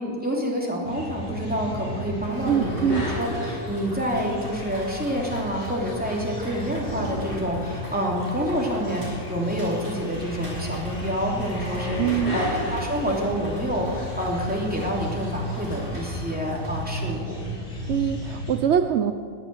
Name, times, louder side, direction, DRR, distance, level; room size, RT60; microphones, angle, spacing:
voice 1, 0.0-2.9 3.2-17.3, equal, 5° right, -3 dB, 3.0 m, -28 dB
sound 1, 0.8-18.6, left 1 dB, 85° left, 4.0 m, -33 dB
Rain, 2.2-17.2, equal, 40° right, 5.6 m, -42 dB
voice 2, 2.4-3.1 12.0-12.4 17.9-19.1, right 9 dB, 70° right, 9 dB, 0.6 m, -23 dB
21.0 x 8.8 x 7.8 m, 2.1 s
omnidirectional pair, 1.8 m